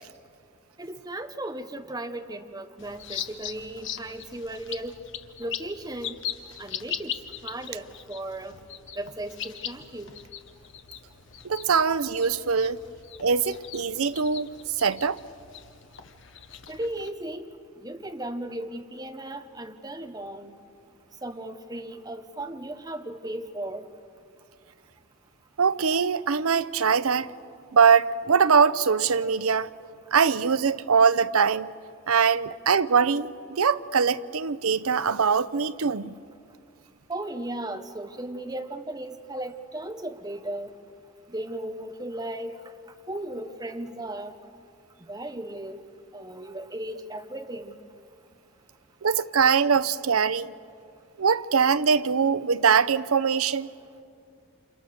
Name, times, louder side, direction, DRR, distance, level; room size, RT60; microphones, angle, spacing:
voice 1, 0.8-4.9 5.4-6.2 6.6-7.2 7.4-8.6 9.0-10.1 16.7-17.5 17.8-20.5 21.2-23.9 37.1-40.7 41.3-42.7 43.1-44.4 45.1-45.8 46.1-47.8, right 1 dB, 20° right, 1.1 m, -36 dB
sound 1, 2.8-17.1, left 9 dB, 55° left, 1.1 m, -40 dB
voice 2, 11.4-12.8 13.2-14.5 14.8-15.2 25.6-27.3 27.7-29.7 30.1-31.7 32.1-36.1 49.0-50.5 51.2-53.7, right 6 dB, 90° right, 0.7 m, -22 dB
29.0 x 28.0 x 6.6 m
head